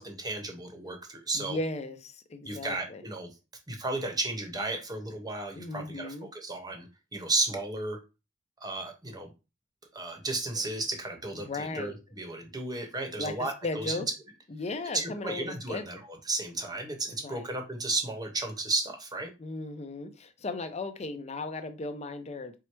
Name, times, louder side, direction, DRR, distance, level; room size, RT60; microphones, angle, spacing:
voice 1, 0.0-1.6 2.4-3.3 3.7-6.9 7.1-8.0 8.6-9.3 9.9-14.0 14.9-16.0 16.3-19.3, right 2 dB, 20° right, 4 dB, 0.9 m, -33 dB
voice 2, 1.3-3.0 5.5-6.3 11.3-12.0 13.2-14.1 14.5-16.0 17.1-17.5 19.4-22.6, left 2 dB, 35° left, 9 dB, 0.5 m, -36 dB
4.6 x 2.1 x 4.5 m, 0.28 s
head